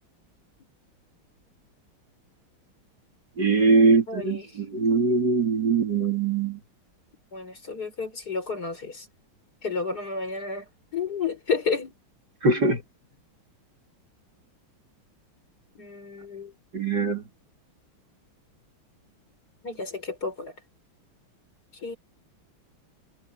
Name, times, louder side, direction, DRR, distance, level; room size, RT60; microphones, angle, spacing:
voice 1, 3.4-6.6 12.4-12.8 16.7-17.2, right 4 dB, 55° right, 3.8 m, -22 dB
voice 2, 4.1-4.5 7.3-9.1 9.6-10.6 10.9-11.9 15.8-16.5 19.6-20.5 21.8-22.0, left 4 dB, 45° left, 4.8 m, -31 dB
omnidirectional pair, 2.3 m